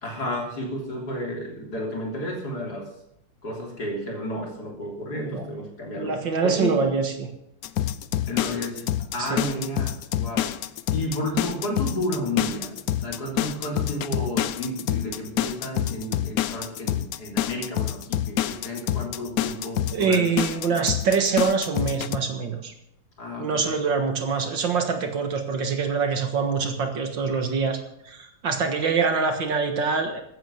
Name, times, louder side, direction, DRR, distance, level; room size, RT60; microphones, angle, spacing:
voice 1, 0.0-2.9 3.4-6.8 8.3-10.5 10.9-12.8 13.0-20.3 20.7-20.8 23.2-23.7, left 1 dB, 50° left, 0 dB, 3.9 m, -32 dB
voice 2, 5.1-5.4 6.0-7.3 9.2-9.4 19.9-22.7 23.4-27.8 28.0-30.2, right 5 dB, 65° right, 6 dB, 2.2 m, -24 dB
sound 1, 7.6-22.2, left 11 dB, 80° left, 0.8 m, -27 dB
14.5 x 9.5 x 7.2 m, 0.80 s
omnidirectional pair, 2.3 m